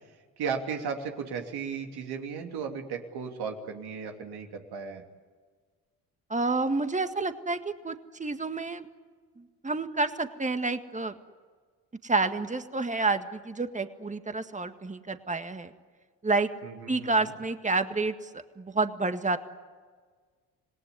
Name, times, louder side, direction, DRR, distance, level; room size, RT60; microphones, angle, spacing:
voice 1, 0.4-5.0 16.6-17.3, right 6 dB, 75° right, 3 dB, 3.0 m, -35 dB
voice 2, 6.3-7.6 7.8-8.9 9.4-11.1 12.0-15.7 16.2-16.5 16.9-18.3 18.6-19.4, right 3 dB, 20° right, 9 dB, 1.8 m, -29 dB
27.0 x 18.5 x 9.9 m, 1.5 s
supercardioid pair, 75°, 39 cm